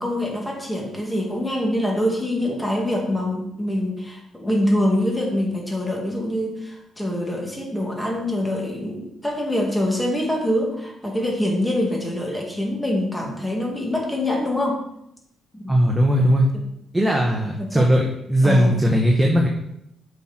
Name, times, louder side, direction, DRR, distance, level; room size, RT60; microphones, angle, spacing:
voice 1, 0.0-14.8 15.6-15.8 16.5-16.6 17.6-17.9 18.4-18.7, left 1 dB, 5° left, -1 dB, 2.5 m, -24 dB
voice 2, 15.7-16.5 16.9-19.5, equal, 10° right, 0 dB, 1.2 m, -18 dB
8.0 x 6.2 x 4.4 m, 0.77 s
cardioid pair, 90°, 0 cm